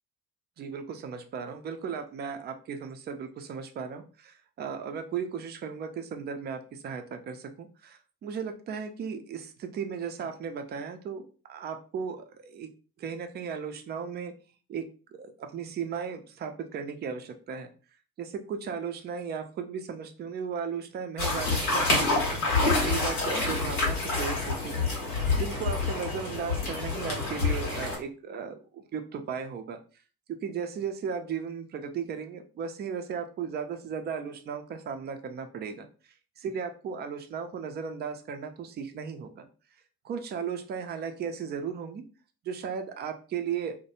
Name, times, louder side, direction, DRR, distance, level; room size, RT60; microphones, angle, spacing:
voice 1, 0.6-12.7 13.0-14.3 14.7-14.8 15.1-17.7 18.2-22.5 22.8-25.1 25.4-29.8 30.3-35.9 36.4-39.5 40.0-42.0 42.4-43.7, right 6 dB, 25° right, 6 dB, 0.4 m, -36 dB
sound 1, 21.2-28.0, left 3 dB, 90° left, 0.8 m, -27 dB
2.2 x 2.1 x 2.9 m, 0.37 s
figure-of-eight pair, 55°, 43 cm